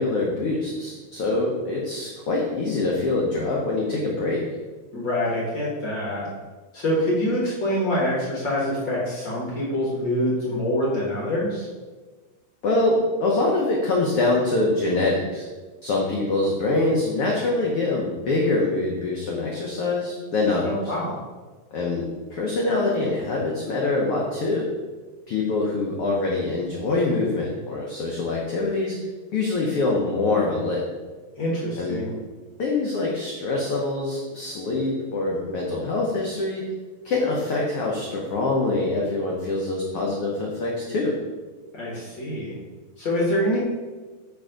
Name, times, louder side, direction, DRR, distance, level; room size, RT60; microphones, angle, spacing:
voice 1, 0.0-4.4 12.6-15.5 15.8-20.8 21.7-24.7 25.3-29.0 29.3-30.9 31.8-32.0 32.6-36.7 37.0-41.2, left 2 dB, 85° left, -2 dB, 1.2 m, -24 dB
voice 2, 4.9-6.3 6.7-11.7 20.6-21.2 31.4-32.1 41.7-42.6 43.0-43.6, left 1 dB, 55° left, -4 dB, 1.3 m, -25 dB
8.7 x 3.4 x 5.0 m, 1.3 s
omnidirectional pair, 3.7 m